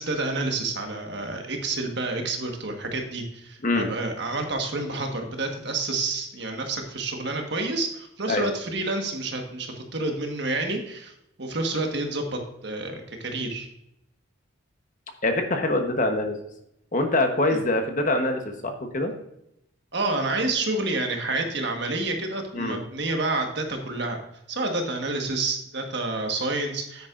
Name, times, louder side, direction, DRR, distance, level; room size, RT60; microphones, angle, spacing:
voice 1, 0.0-11.1 11.4-13.7 17.5-17.6 19.9-24.2 24.5-27.1, right 2 dB, 55° right, 3 dB, 1.5 m, -29 dB
voice 2, 15.2-16.4 16.9-19.1 22.5-22.8, left 2 dB, 40° left, 5 dB, 1.1 m, -24 dB
9.6 x 9.3 x 2.5 m, 0.81 s
head